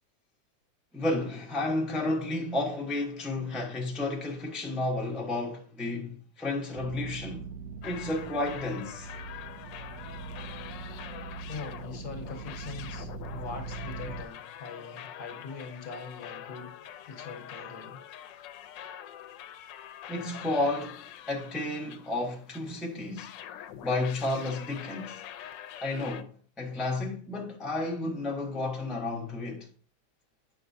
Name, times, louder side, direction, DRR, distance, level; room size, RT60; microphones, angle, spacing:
voice 1, 0.9-7.5 7.8-9.1 20.1-23.3 23.8-25.2 25.8-26.3 26.6-29.7, left 2 dB, ahead, 0.7 m, -32 dB
sound 1, 6.7-14.2, right 5 dB, 80° right, 1.3 m, -41 dB
sound 2, 7.8-22.7 23.2-26.2, left 10 dB, 90° left, 1.3 m, -45 dB
voice 2, 11.5-18.0, left 4 dB, 60° left, 1.4 m, -42 dB
8.5 x 5.6 x 2.6 m
omnidirectional pair, 1.9 m